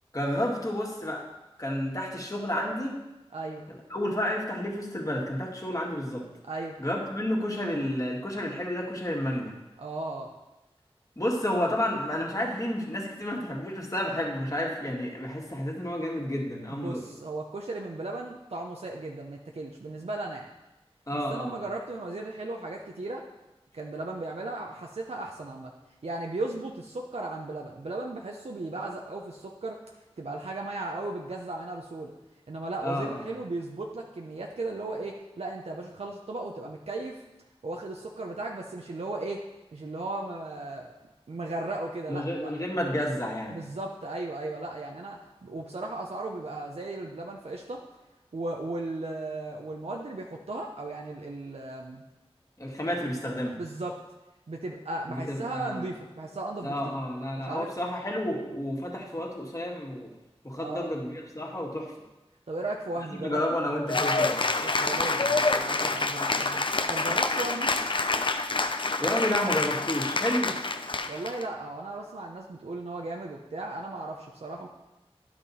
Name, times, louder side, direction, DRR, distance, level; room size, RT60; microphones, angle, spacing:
voice 1, 0.1-1.3 1.6-3.0 3.9-6.2 6.8-9.5 11.2-17.0 21.1-21.6 32.8-33.2 42.1-43.6 52.6-53.6 55.1-55.9 56.6-60.1 60.4-61.9 63.1-64.4 69.0-70.5, left 1 dB, 35° left, -2 dB, 1.9 m, -30 dB
voice 2, 3.3-3.7 6.5-6.8 9.8-10.3 16.7-20.5 21.1-23.3 23.7-25.7 26.0-29.8 30.2-32.1 32.5-37.2 37.6-39.5 39.7-40.9 41.3-42.5 43.5-47.8 48.3-52.0 53.6-54.0 54.5-57.0 57.4-57.7 60.6-60.9 62.5-63.6 64.6-67.7 71.1-74.7, right 2 dB, 80° right, 0 dB, 0.7 m, -36 dB
Cheering / Applause, 63.9-71.4, left 3 dB, 55° left, 0.5 m, -27 dB
10.5 x 5.9 x 4.2 m, 1.0 s
wide cardioid pair, 50°, 10 cm